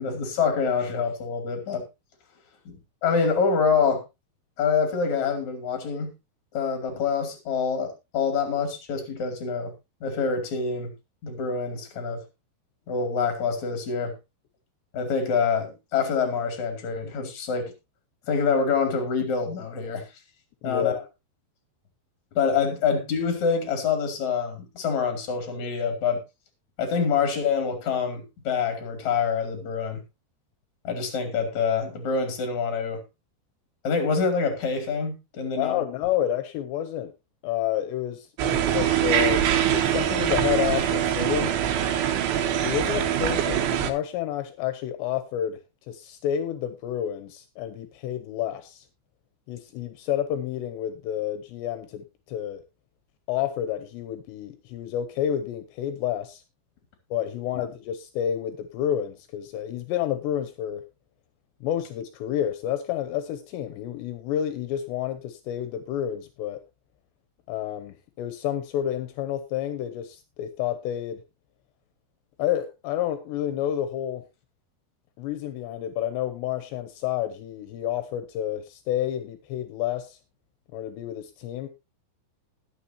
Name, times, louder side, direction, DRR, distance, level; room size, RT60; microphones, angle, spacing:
voice 1, 0.0-1.8 2.7-2.8 3.0-4.0 4.6-6.1 6.5-9.7 10.0-10.9 11.2-12.2 12.9-14.1 14.9-17.7 18.3-20.0 20.6-21.0 22.3-26.2 26.8-30.0 30.8-33.0 33.8-35.8 57.5-57.7, left 5 dB, 45° left, 6 dB, 3.2 m, -26 dB
voice 2, 20.7-21.0 35.6-37.1 37.4-41.5 42.6-45.6 45.9-48.8 49.5-52.6 53.3-56.4 57.1-60.8 61.6-66.6 67.5-71.2 72.4-74.2 75.2-80.2 80.7-81.7, left 10 dB, 80° left, 10 dB, 2.9 m, -29 dB
sound 1, 38.4-43.9, right 10 dB, 80° right, 3.2 m, -23 dB
20.0 x 7.0 x 2.7 m, 0.24 s
omnidirectional pair, 5.2 m